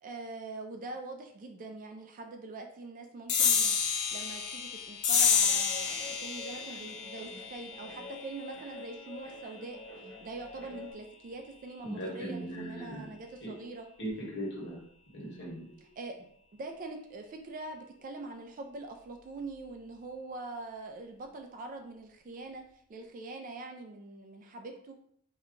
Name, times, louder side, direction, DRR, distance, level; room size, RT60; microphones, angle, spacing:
voice 1, 0.0-3.8 4.1-9.8 10.2-13.9 16.0-16.3 16.5-22.6 22.9-24.9, right 2 dB, 35° right, 5 dB, 0.3 m, -43 dB
sound 1, 3.3-10.1, left 6 dB, 75° left, 0.6 m, -30 dB
Guitar, 5.5-10.9, left 2 dB, 15° left, 0.9 m, -48 dB
voice 2, 11.8-13.1 13.4-13.5 14.0-14.8 15.1-15.7, right 1 dB, 50° left, -5 dB, 1.4 m, -38 dB
2.8 x 2.2 x 3.8 m, 0.66 s
head